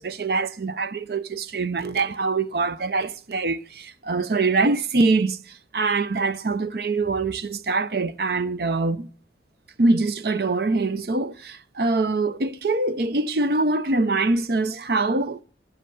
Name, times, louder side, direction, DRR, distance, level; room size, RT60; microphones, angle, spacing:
voice 1, 0.0-9.1 9.8-15.4, right 3 dB, 60° right, 0.6 m, -24 dB
13.0 x 7.8 x 6.4 m
head